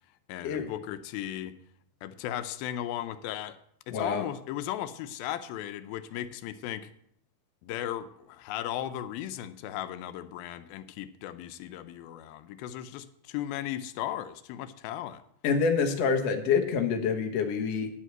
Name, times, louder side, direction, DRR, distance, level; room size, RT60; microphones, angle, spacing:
voice 1, 0.3-1.6 2.0-3.6 3.9-6.9 7.6-15.2, left 12 dB, 90° left, 11 dB, 2.5 m, -36 dB
voice 2, 3.9-4.2 15.4-17.9, left 5 dB, 60° left, 3 dB, 1.9 m, -26 dB
10.0 x 6.4 x 7.8 m, 0.71 s
omnidirectional pair, 4.1 m